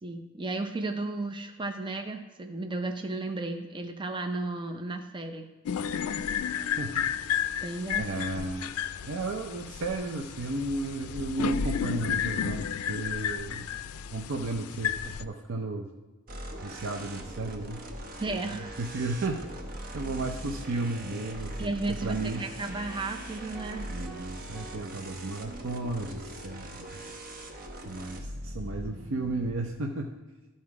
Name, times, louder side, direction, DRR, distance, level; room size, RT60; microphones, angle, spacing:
voice 1, 0.0-5.5 7.6-8.5 18.2-18.7 21.6-23.9, right 2 dB, 20° right, 5 dB, 0.5 m, -34 dB
sound 1, 5.7-15.2, left 8 dB, 85° left, 0.4 m, -32 dB
voice 2, 6.6-7.6 8.0-8.7 9.0-12.6 12.9-13.7 14.1-15.9 16.6-17.8 18.4-19.4 19.9-22.4 23.9-26.9 27.8-30.1, right 2 dB, 65° right, 1 dB, 0.6 m, -34 dB
sound 2, 16.3-29.5, equal, 45° right, 0.9 m, -41 dB
sound 3, 23.5-26.0, right 4 dB, 5° right, 1.8 m, -51 dB
12.5 x 4.3 x 4.7 m, 1.2 s
head